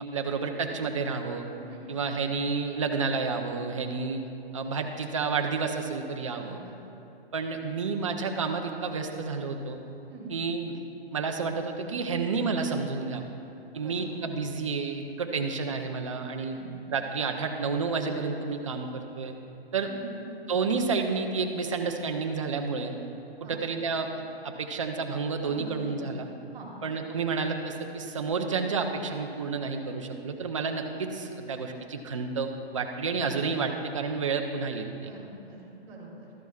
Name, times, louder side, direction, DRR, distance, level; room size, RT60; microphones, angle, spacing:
voice 1, 0.1-1.5 1.9-4.3 4.5-6.6 7.3-9.8 10.3-10.8 11.1-13.3 13.7-16.6 16.9-19.3 19.7-19.9 20.5-22.9 23.4-26.3 26.8-35.1, right 4 dB, 30° right, 3 dB, 0.6 m, -30 dB
voice 2, 1.5-1.9 6.2-6.8 10.1-10.4 13.6-14.1 16.5-16.7 19.8-20.1 23.3-23.6 25.4-26.1 26.5-26.7 34.9-36.3, right 3 dB, 10° right, -11 dB, 1.9 m, -45 dB
13.5 x 10.5 x 2.4 m, 2.8 s
hypercardioid pair, 170°, 31 cm